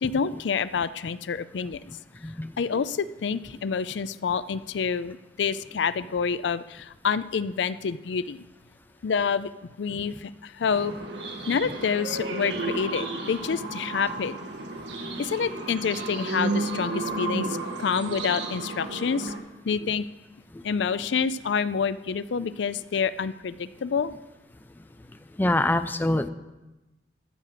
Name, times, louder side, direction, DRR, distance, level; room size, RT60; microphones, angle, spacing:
voice 1, 0.0-1.8 2.6-8.4 9.0-9.5 9.8-10.9 11.5-14.4 15.2-19.3 19.7-20.1 20.6-24.1, left 6 dB, 80° left, 16 dB, 0.4 m, -28 dB
sound 1, 10.7-19.4, right 2 dB, 80° right, 1.7 m, -32 dB
voice 2, 25.4-26.3, left 1 dB, 10° left, 10 dB, 0.5 m, -24 dB
14.0 x 6.3 x 6.7 m, 1.0 s
head